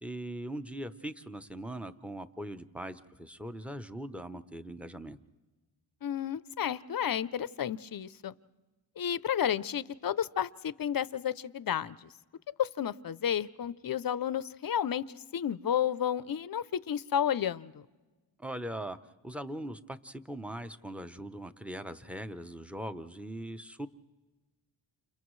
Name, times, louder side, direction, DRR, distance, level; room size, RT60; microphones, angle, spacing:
voice 1, 0.0-5.2 18.4-19.0 19.2-23.9, right 1 dB, 5° right, 11 dB, 0.7 m, -40 dB
voice 2, 6.0-8.3 9.0-12.1 12.6-17.9, left 9 dB, 45° left, 17 dB, 0.6 m, -32 dB
29.5 x 29.0 x 3.2 m, 1.2 s
wide cardioid pair, 75°, 50 cm